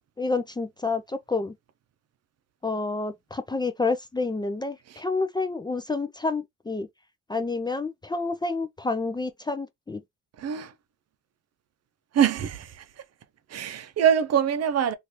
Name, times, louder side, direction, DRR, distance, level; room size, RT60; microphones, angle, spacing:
voice 1, 0.2-1.5 2.6-6.9 7.3-10.0, left 3 dB, 15° left, 0.4 m, -29 dB
voice 2, 10.4-10.7 12.1-13.0 13.5-15.0, right 9 dB, 55° right, 0.6 m, -24 dB
3.1 x 2.5 x 2.8 m
cardioid pair, 90°, 30 cm